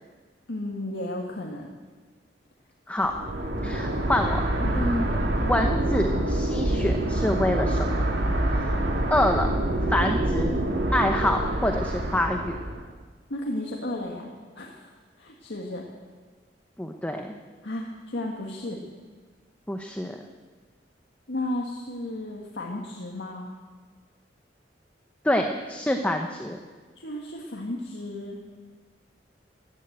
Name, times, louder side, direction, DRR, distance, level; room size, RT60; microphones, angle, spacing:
voice 1, 0.5-1.7 2.9-3.0 3.8-4.0 4.6-4.9 13.3-14.3 14.6-15.9 17.6-18.8 21.3-23.5 27.0-28.4, left 1 dB, 75° left, -1 dB, 1.6 m, -34 dB
sound 1, 3.0-12.9, right 1 dB, 70° right, 2.0 m, -26 dB
voice 2, 3.6-4.4 4.7-5.1 5.4-7.9 8.5-8.8 9.1-9.5 9.9-10.6 10.9-12.6 16.8-17.3 19.7-20.2 25.2-26.6, left 1 dB, 10° left, 4 dB, 0.8 m, -26 dB
15.0 x 11.0 x 8.0 m, 1.4 s
head